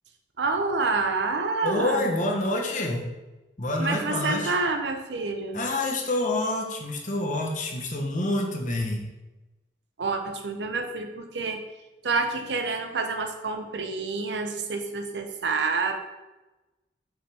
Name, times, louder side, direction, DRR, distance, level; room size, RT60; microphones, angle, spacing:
voice 1, 0.4-2.1 3.8-5.6 10.0-11.6 12.0-16.0, right 3 dB, 80° right, 5 dB, 0.7 m, -28 dB
voice 2, 1.6-3.1 3.6-4.6 5.5-9.1, left 2 dB, 45° left, 1 dB, 1.0 m, -27 dB
5.7 x 5.5 x 3.4 m, 1.1 s
head